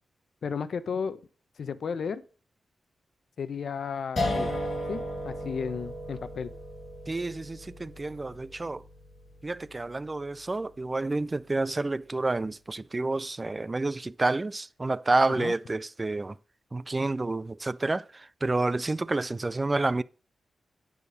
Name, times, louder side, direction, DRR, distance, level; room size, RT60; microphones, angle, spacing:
voice 1, 0.4-1.2 1.6-2.2 3.4-4.6 4.9-6.5 15.3-15.5, left 6 dB, 65° left, 0.8 m, -33 dB
sound 1, 4.2-11.1, left 1 dB, 35° left, 5.1 m, -35 dB
voice 2, 7.1-8.8 9.4-16.3 16.7-18.0 18.4-20.0, right 2 dB, 20° right, 0.3 m, -29 dB
9.4 x 5.1 x 6.2 m
wide cardioid pair, 140°, 0 cm